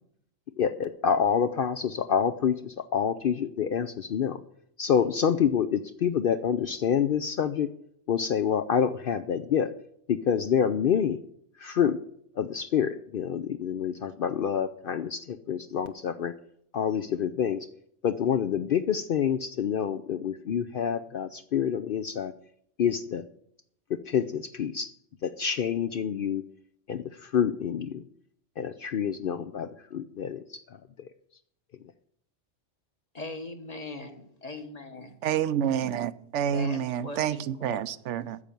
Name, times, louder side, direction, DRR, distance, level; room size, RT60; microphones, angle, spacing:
voice 1, 0.6-4.4 4.8-7.7 8.1-9.7 10.1-11.2 11.6-12.0 12.4-16.3 16.7-17.7 18.0-22.3 22.8-23.2 23.9-24.9 25.2-26.4 26.9-28.0 28.6-31.1, left 8 dB, 60° left, 0.7 m, -27 dB
voice 2, 33.1-35.2 36.5-37.8, left 2 dB, 35° left, 1.4 m, -40 dB
voice 3, 35.2-38.4, right 9 dB, 85° right, 0.9 m, -28 dB
9.8 x 6.9 x 9.0 m
omnidirectional pair, 1.2 m